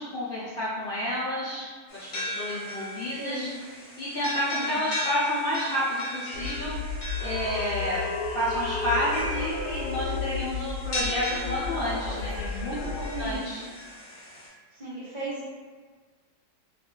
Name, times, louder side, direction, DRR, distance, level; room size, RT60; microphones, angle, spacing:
voice 1, 0.0-1.6 1.9-3.5 4.0-6.8 7.2-8.0 8.3-13.6, equal, 70° left, -9 dB, 0.5 m, -30 dB
sound 1, 1.9-14.5, left 1 dB, 50° left, 1.0 m, -37 dB
voice 2, 3.2-3.6 4.4-4.9 13.1-13.7 14.7-15.5, right 2 dB, 40° right, -9 dB, 0.9 m, -36 dB
sound 2, 6.3-13.3, left 4 dB, 85° left, 1.2 m, -33 dB
2.5 x 2.4 x 3.7 m, 1.5 s
omnidirectional pair, 1.7 m